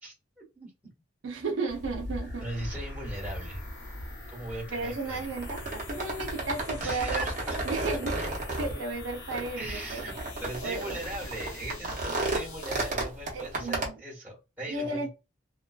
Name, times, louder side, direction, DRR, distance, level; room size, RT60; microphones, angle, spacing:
voice 1, 0.0-0.7 2.4-3.6 4.3-5.2 6.8-7.8 8.1-8.3 9.6-10.1 10.4-15.1, right 1 dB, 10° right, 1.2 m, -39 dB
voice 2, 1.2-2.5 4.7-7.2 7.6-10.0 10.6-11.0 12.1-12.2 13.3-14.0 14.7-15.1, right 3 dB, 75° right, 0.5 m, -34 dB
sound 1, 1.7-13.9, right 2 dB, 40° right, 0.8 m, -35 dB
sound 2, 2.0-12.9, left 3 dB, 55° left, 0.8 m, -46 dB
2.4 x 2.2 x 2.3 m
head